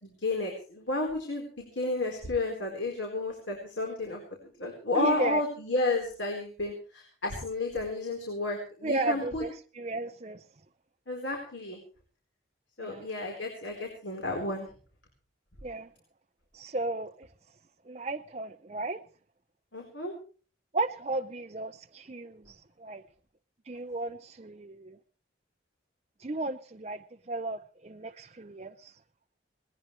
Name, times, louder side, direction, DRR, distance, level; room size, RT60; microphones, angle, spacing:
voice 1, 0.0-9.4 11.1-11.8 12.8-14.7 19.7-20.1, left 2 dB, 75° left, 1 dB, 4.3 m, -32 dB
voice 2, 4.9-5.4 8.8-10.4 12.8-13.1 15.6-15.9 16.5-17.3 17.9-19.0 20.7-23.0 23.7-25.0 26.2-28.9, right 2 dB, 35° right, 6 dB, 0.6 m, -34 dB
19.5 x 19.0 x 3.3 m, 0.40 s
head